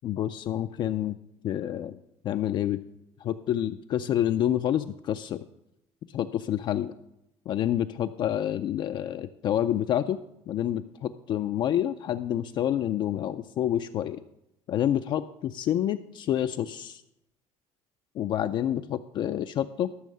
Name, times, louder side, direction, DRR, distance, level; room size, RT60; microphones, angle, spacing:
voice 1, 0.0-1.2 1.4-2.0 2.2-2.8 3.2-5.4 6.1-6.9 7.5-10.2 10.5-14.2 14.7-17.0 18.2-19.9, left 11 dB, 40° left, 9 dB, 0.3 m, -28 dB
12.5 x 6.3 x 6.6 m, 0.84 s
cardioid pair, 170°, 12 cm